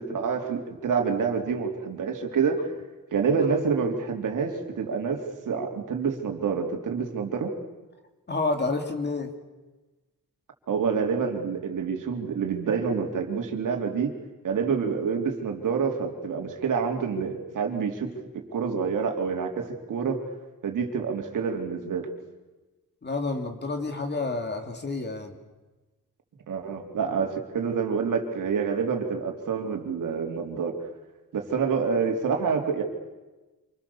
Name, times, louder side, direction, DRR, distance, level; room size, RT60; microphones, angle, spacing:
voice 1, 0.0-2.6 3.1-7.5 10.7-14.1 14.4-18.1 18.5-20.2 20.6-22.1 26.5-30.7 31.3-32.8, right 6 dB, 65° right, 2 dB, 3.3 m, -27 dB
voice 2, 8.3-9.3 23.0-25.3, left 3 dB, 30° left, 5 dB, 2.5 m, -29 dB
27.5 x 26.5 x 7.1 m, 1.2 s
wide cardioid pair, 160°, 34 cm